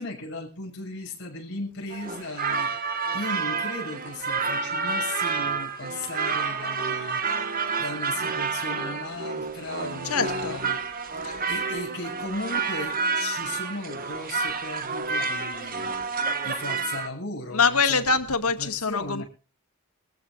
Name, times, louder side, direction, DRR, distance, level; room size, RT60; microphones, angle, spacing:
voice 1, 0.0-10.9 11.5-18.2 18.6-19.2, left 2 dB, 55° left, 6.5 m, -37 dB
sound 1, 1.9-17.1, right 4 dB, 40° right, 1.6 m, -29 dB
voice 2, 10.0-10.6 11.2-11.5 17.5-19.2, left 5 dB, 85° left, 2.1 m, -24 dB
24.0 x 15.0 x 2.6 m
head